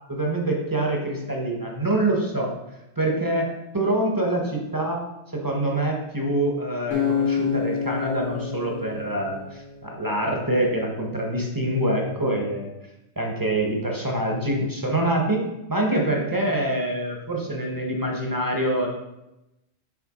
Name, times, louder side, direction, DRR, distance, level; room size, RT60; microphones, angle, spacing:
voice 1, 0.1-2.5 3.0-5.0 5.3-12.7 13.2-18.9, right 1 dB, 20° right, 0 dB, 0.8 m, -25 dB
Acoustic guitar, 6.9-10.1, left 7 dB, 85° left, 1.6 m, -28 dB
7.3 x 3.4 x 4.8 m, 0.94 s
omnidirectional pair, 1.3 m